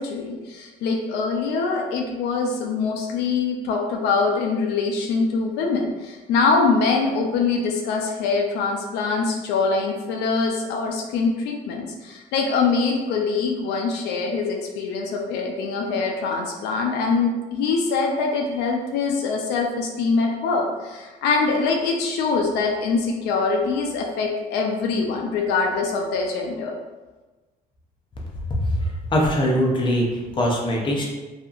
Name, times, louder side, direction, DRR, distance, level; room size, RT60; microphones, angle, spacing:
voice 1, 0.0-26.7, left 4 dB, 85° left, 1 dB, 0.4 m, -23 dB
voice 2, 28.6-31.0, equal, 30° left, -2 dB, 0.6 m, -22 dB
2.7 x 2.4 x 2.4 m, 1.2 s
cardioid pair, 110°, 17 cm